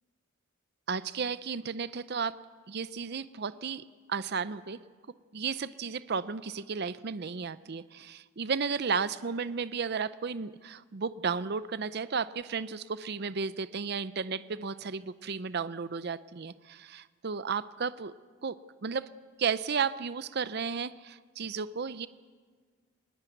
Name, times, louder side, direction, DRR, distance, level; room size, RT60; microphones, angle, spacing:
voice 1, 0.9-2.3 2.7-4.8 5.3-18.1 18.4-18.5 18.8-19.1 19.4-22.1, right 5 dB, 50° right, 15 dB, 0.6 m, -33 dB
20.5 x 19.0 x 9.2 m, 1.5 s
head